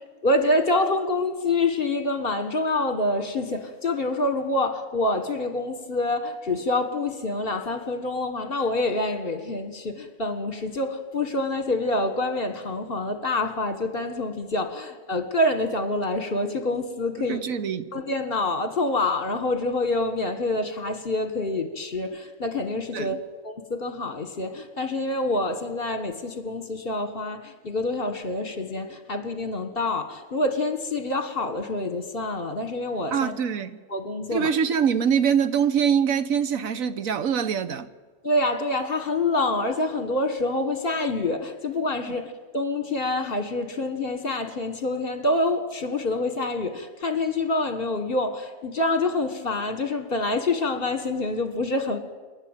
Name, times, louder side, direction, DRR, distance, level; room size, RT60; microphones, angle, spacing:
voice 1, 0.2-17.4 17.9-23.2 23.4-33.3 33.9-34.5 38.2-52.0, left 2 dB, 45° left, 1.8 m, -26 dB
voice 2, 17.3-17.9 22.9-23.2 33.1-33.7 34.3-37.9, right 7 dB, 80° right, 1.4 m, -24 dB
27.5 x 11.0 x 9.0 m
omnidirectional pair, 1.4 m